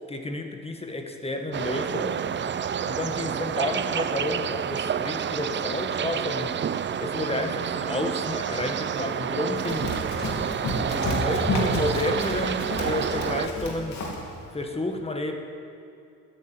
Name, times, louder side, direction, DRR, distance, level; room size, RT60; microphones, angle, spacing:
voice 1, 0.1-2.2 2.9-6.5 7.0-10.0 10.7-14.0 14.5-15.4, left 2 dB, 20° left, 4 dB, 1.7 m, -31 dB
sound 1, 1.5-13.5, right 8 dB, 40° right, 0.6 m, -29 dB
Run, 9.6-14.3, left 2 dB, 65° left, 3.1 m, -31 dB
13.5 x 10.5 x 9.4 m, 2.6 s
cardioid pair, 90°, 30 cm